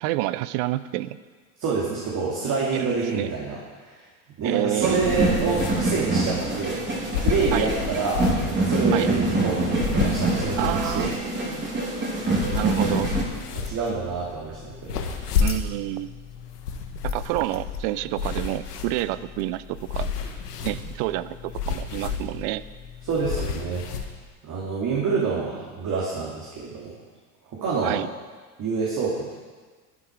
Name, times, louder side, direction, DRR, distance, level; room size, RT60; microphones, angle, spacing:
voice 1, 0.0-1.2 2.7-3.3 4.4-5.1 7.5-7.7 8.9-9.1 10.6-11.2 11.5-11.7 12.5-13.1 15.4-16.1 17.0-20.1 20.6-22.6 27.8-28.1, right 16 dB, 55° right, 16 dB, 0.6 m, -28 dB
voice 2, 1.6-4.1 4.4-6.8 7.2-11.1 13.6-15.0 23.0-23.8 24.4-26.9 27.5-28.0 28.6-29.3, right 4 dB, 40° right, -5 dB, 2.7 m, -27 dB
sound 1, 4.8-13.2, right 2 dB, 25° right, 3.1 m, -25 dB
sound 2, 5.0-24.1, left 6 dB, 85° left, 1.3 m, -31 dB
11.0 x 10.0 x 4.7 m, 1.4 s
hypercardioid pair, 85°, 46 cm